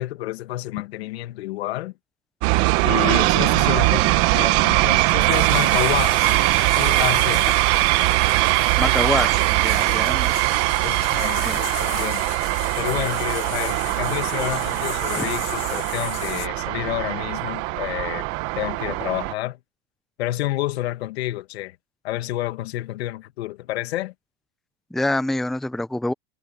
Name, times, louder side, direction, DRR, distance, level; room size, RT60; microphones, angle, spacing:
voice 1, 0.0-1.9 2.8-6.3 6.8-7.6 9.9-10.1 10.8-12.2 12.8-18.3 18.6-19.6 20.2-21.8 22.0-24.1, left 15 dB, 75° left, 2.0 m, -29 dB
sound 1, 2.4-19.3, right 21 dB, 45° right, 1.2 m, -21 dB
sound 2, 5.3-16.5, left 22 dB, 60° left, 1.3 m, -37 dB
voice 2, 8.8-10.4 11.4-11.6 15.2-15.3 24.9-26.1, left 1 dB, ahead, 0.8 m, -26 dB
supercardioid pair, 140°, 32 cm